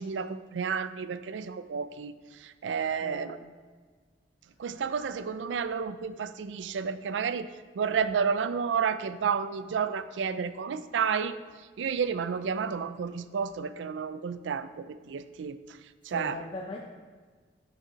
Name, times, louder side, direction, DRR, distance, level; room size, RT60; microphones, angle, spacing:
voice 1, 0.0-3.4 4.6-7.5 7.7-11.4 11.8-15.6 16.0-16.4, right 6 dB, 75° right, 13 dB, 0.4 m, -31 dB
voice 2, 3.0-3.4 16.1-16.8, left 2 dB, 30° left, -1 dB, 0.5 m, -39 dB
7.4 x 5.9 x 4.0 m, 1.5 s
head